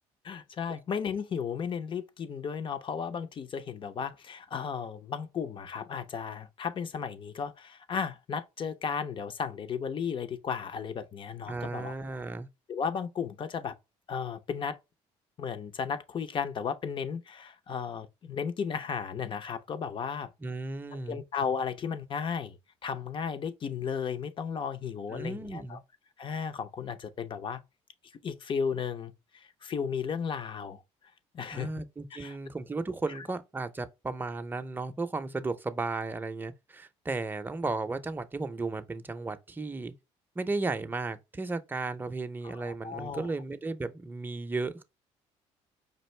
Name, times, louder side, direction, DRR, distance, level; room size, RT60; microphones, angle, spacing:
voice 1, 0.2-11.9 12.7-13.8 14.1-14.8 15.4-20.3 20.9-25.8 26.2-27.6 28.2-30.8 31.3-31.7 32.1-32.4 33.1-33.3 42.4-43.3, left 6 dB, 45° left, 0.6 m, -34 dB
voice 2, 11.5-12.5 20.4-21.2 25.1-25.8 31.5-39.9 40.4-44.8, right 3 dB, 15° right, 0.6 m, -34 dB
5.3 x 2.5 x 3.2 m
cardioid pair, 95°, 12 cm